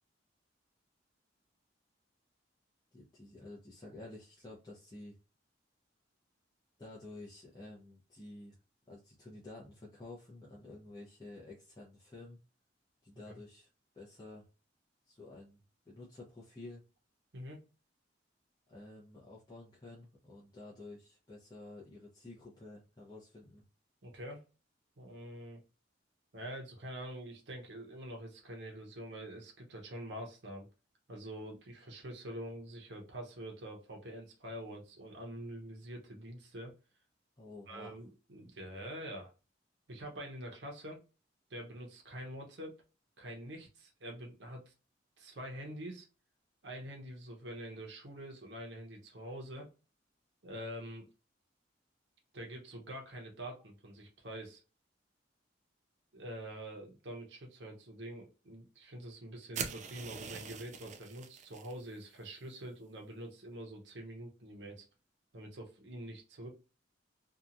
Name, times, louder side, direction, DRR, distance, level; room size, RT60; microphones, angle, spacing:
voice 1, 2.9-5.2 6.8-8.6 8.9-12.4 13.0-13.7 13.9-14.5 15.1-16.8 18.7-23.6 37.4-38.0, left 2 dB, 20° left, -6 dB, 0.7 m, -51 dB
voice 2, 24.0-24.5 25.0-25.6 26.3-30.7 31.1-36.7 37.7-39.3 39.9-41.0 41.5-42.8 43.2-44.7 45.2-46.1 46.6-49.7 50.4-51.1 52.3-54.6 56.1-64.9 65.3-66.5, right 1 dB, 65° right, 1 dB, 0.8 m, -45 dB
sound 1, 59.5-61.7, right 6 dB, 40° right, 0.4 m, -42 dB
2.9 x 2.4 x 2.5 m, 0.31 s
head